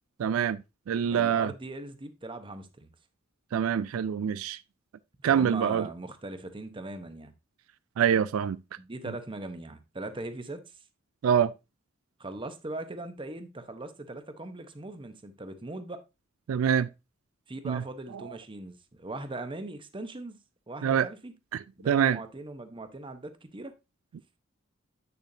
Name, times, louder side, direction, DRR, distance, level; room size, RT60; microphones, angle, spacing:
voice 1, 0.2-1.5 3.5-4.6 5.2-5.9 8.0-8.6 11.2-11.5 16.5-16.9 17.6-17.8 20.8-21.1 21.5-22.2, right 8 dB, 85° right, 0.3 m, -25 dB
voice 2, 1.1-2.9 5.3-7.3 8.8-10.6 12.2-16.0 17.5-20.4 20.7-21.3 21.8-23.7, right 2 dB, 25° right, 0.8 m, -40 dB
8.2 x 6.8 x 2.7 m
head